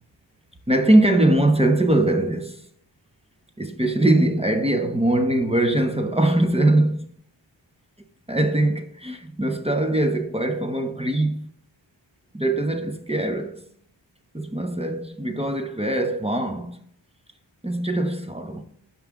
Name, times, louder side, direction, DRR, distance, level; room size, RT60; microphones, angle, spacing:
voice 1, 0.7-2.7 3.6-7.1 8.3-11.5 12.3-13.7 14.3-16.8 17.6-18.6, right 1 dB, 15° right, 0.7 m, -21 dB
5.9 x 5.4 x 3.5 m
wide cardioid pair, 60°, 46 cm